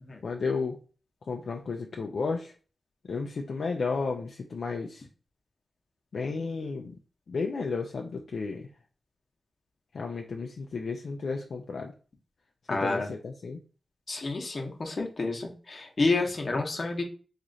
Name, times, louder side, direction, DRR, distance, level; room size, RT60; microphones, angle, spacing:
voice 1, 0.2-0.8 1.3-2.5 3.0-5.1 6.1-7.0 7.3-8.7 9.9-11.9 12.7-13.6, left 4 dB, 75° left, 2 dB, 0.4 m, -33 dB
voice 2, 12.7-13.1 14.1-17.0, left 3 dB, 55° left, 2 dB, 0.9 m, -29 dB
3.1 x 2.4 x 3.8 m, 0.37 s
cardioid pair, 55°, 0 cm